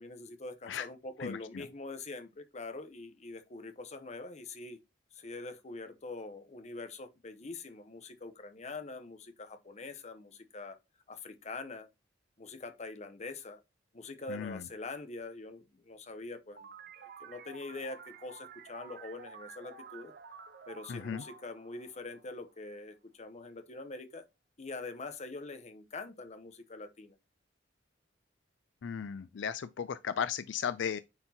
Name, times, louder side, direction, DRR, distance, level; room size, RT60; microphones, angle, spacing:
voice 1, 0.0-4.8 5.1-10.8 11.1-11.9 12.4-13.6 13.9-20.1 20.7-24.3 24.6-27.1, left 3 dB, 40° left, 0.8 m, -44 dB
voice 2, 1.2-1.7 14.3-14.7 20.9-21.2 28.8-31.0, left 7 dB, 70° left, 0.4 m, -36 dB
sound 1, 16.6-22.8, right 5 dB, 55° right, 0.7 m, -51 dB
9.5 x 4.4 x 2.8 m
head